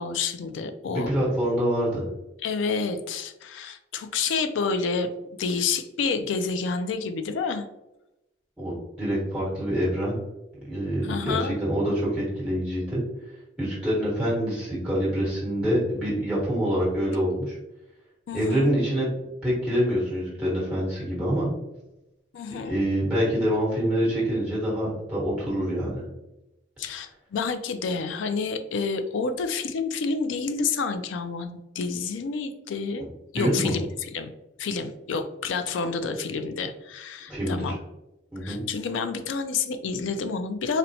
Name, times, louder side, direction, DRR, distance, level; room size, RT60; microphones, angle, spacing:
voice 1, 0.0-1.1 2.4-5.1 5.4-7.7 11.0-11.6 18.3-18.7 22.3-22.8 26.8-33.1 33.3-34.3 34.6-37.8 38.4-40.8, left 4 dB, 80° left, 9 dB, 0.4 m, -29 dB
voice 2, 0.9-2.0 8.6-10.2 10.7-13.0 13.6-17.6 18.3-19.1 19.4-21.5 22.6-26.0 33.3-33.7 37.3-37.7 38.3-38.6, equal, 5° right, -7 dB, 1.1 m, -26 dB
4.1 x 2.1 x 2.7 m, 0.95 s
head